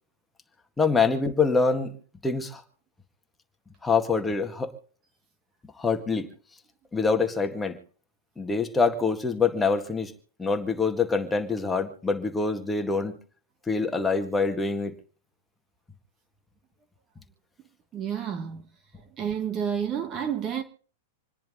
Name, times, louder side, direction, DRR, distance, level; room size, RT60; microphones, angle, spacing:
voice 1, 0.8-2.0 2.2-2.6 3.8-4.7 5.8-6.3 6.9-7.8 8.4-10.1 10.4-13.2 13.7-15.0, left 4 dB, 10° left, 1.9 m, -25 dB
voice 2, 17.9-18.6 19.2-20.6, right 8 dB, 30° right, 1.4 m, -29 dB
27.0 x 10.5 x 3.9 m
hypercardioid pair, 135°, 0 cm